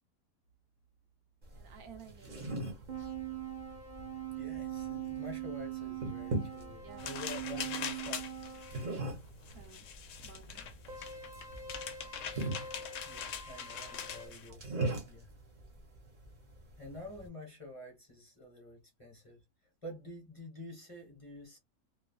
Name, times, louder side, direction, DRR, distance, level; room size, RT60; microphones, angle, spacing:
sound 1, 1.4-17.3, right 2 dB, 35° right, 0.9 m, -42 dB
voice 1, 1.5-2.6 6.8-7.2 9.5-9.9 10.2-10.7 14.5-14.6 14.8-15.1, right 8 dB, 80° right, 1.2 m, -54 dB
sound 2, 2.9-9.0 10.9-14.3, right 9 dB, 50° right, 0.5 m, -42 dB
voice 2, 4.4-8.3 12.3-15.3 16.8-19.4 19.8-21.6, left 1 dB, 25° left, 1.1 m, -48 dB
sound 3, 7.0-14.5, left 8 dB, 65° left, 0.9 m, -43 dB
3.1 x 2.3 x 2.3 m
omnidirectional pair, 1.6 m